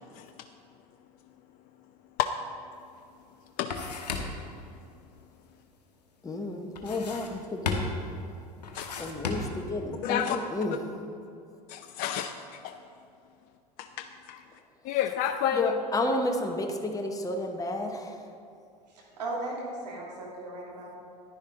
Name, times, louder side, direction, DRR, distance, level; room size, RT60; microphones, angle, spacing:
sound 1, 2.8-2.9 3.3-4.5 6.7-7.4 7.7-8.1 8.6-9.7, left 4 dB, 80° left, 1.1 m, -34 dB
voice 1, 6.2-7.8 9.0-10.8 15.5-18.2, left 2 dB, 15° left, 4 dB, 1.0 m, -31 dB
voice 2, 8.7-9.1 10.0-10.4 11.7-12.3 12.6-12.8 13.8-14.4 14.8-15.7, left 9 dB, 45° left, 8 dB, 0.5 m, -30 dB
voice 3, 19.2-21.0, right 2 dB, 80° right, -3 dB, 2.5 m, -36 dB
10.5 x 10.0 x 3.8 m, 2.4 s
figure-of-eight pair, 75°, 21 cm